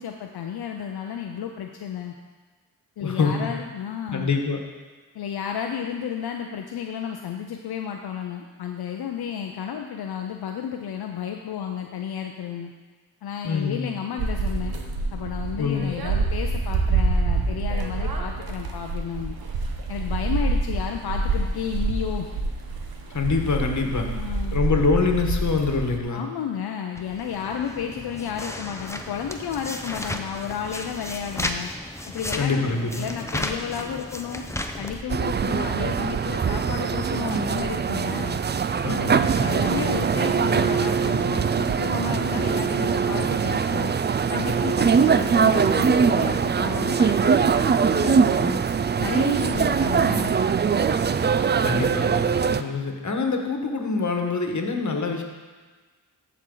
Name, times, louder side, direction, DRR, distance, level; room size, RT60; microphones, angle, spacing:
voice 1, 0.0-2.1 3.0-4.3 5.1-12.7 13.2-14.7 15.1-19.4 19.9-22.3 24.1-24.6 26.1-31.7 32.1-34.5 34.8-38.4 39.4-43.9 44.3-48.6 49.0-50.4, left 8 dB, 80° left, 3 dB, 0.6 m, -32 dB
voice 2, 3.0-3.5 4.1-4.6 13.4-13.8 15.6-15.9 23.1-24.1 24.5-26.2 32.4-33.1 38.8-39.4 51.6-55.2, left 4 dB, 50° left, 3 dB, 1.4 m, -25 dB
sound 1, 14.2-26.0, right 3 dB, 70° right, 1.1 m, -26 dB
sound 2, 27.0-35.0, left 1 dB, 5° left, 0.7 m, -34 dB
sound 3, 35.1-52.6, right 6 dB, 30° right, 0.4 m, -22 dB
14.0 x 4.7 x 3.9 m, 1.3 s
cardioid pair, 55°, 38 cm